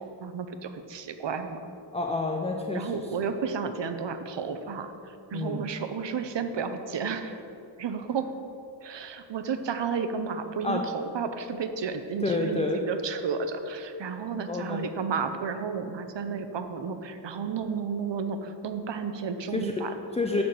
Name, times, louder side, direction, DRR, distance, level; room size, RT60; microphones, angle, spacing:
voice 1, 0.0-1.6 2.7-7.4 7.8-8.3 8.8-20.0, right 5 dB, 70° right, 8 dB, 0.8 m, -32 dB
voice 2, 1.9-3.3 5.3-5.7 8.1-8.2 10.6-10.8 12.2-12.8 14.5-14.9 19.5-19.7 20.1-20.4, left 2 dB, 15° left, 2 dB, 0.4 m, -29 dB
9.8 x 4.3 x 7.6 m, 2.7 s
wide cardioid pair, 180°, 45 cm